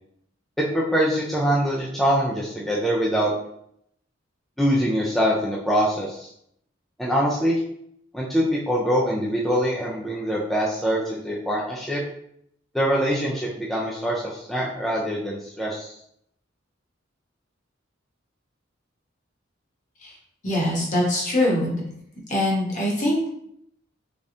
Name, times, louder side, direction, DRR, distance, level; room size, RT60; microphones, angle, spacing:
voice 1, 0.6-3.3 4.6-6.3 7.0-7.6 8.1-12.0 12.7-15.9, equal, ahead, -5 dB, 0.4 m, -24 dB
voice 2, 20.4-21.8 22.3-23.3, left 1 dB, 40° left, -3 dB, 1.2 m, -23 dB
3.7 x 3.4 x 2.7 m, 0.70 s
head